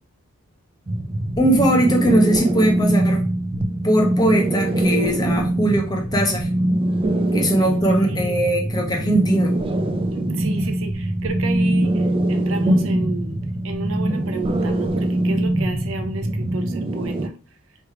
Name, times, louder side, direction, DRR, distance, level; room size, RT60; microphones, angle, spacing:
sound 1, 0.9-17.3, right 1 dB, 25° right, 0.3 m, -22 dB
voice 1, 1.4-3.2 3.8-6.5 7.3-9.6, right 1 dB, 20° left, 0.8 m, -20 dB
voice 2, 7.9-8.4 10.1-11.9 12.3-13.3 13.6-17.3, right 3 dB, 70° right, 0.7 m, -32 dB
3.2 x 3.0 x 4.7 m
head